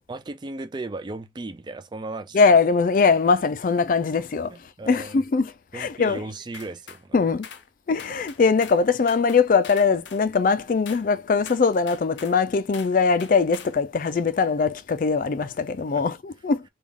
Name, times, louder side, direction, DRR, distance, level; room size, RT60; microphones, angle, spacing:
voice 1, 0.1-2.4 4.5-5.2 5.7-7.2 15.9-16.0, right 2 dB, 25° right, 0.3 m, -36 dB
voice 2, 2.3-4.5 4.9-6.2 7.1-7.5 7.9-16.6, left 5 dB, 50° left, 0.4 m, -21 dB
sound 1, 6.5-7.0 7.4-7.7 8.0-8.8 9.1-10.2 10.8-11.1 11.4-12.4 12.7-12.9 13.2-13.8, left 7 dB, 90° left, 0.6 m, -43 dB
3.5 x 2.3 x 3.5 m
head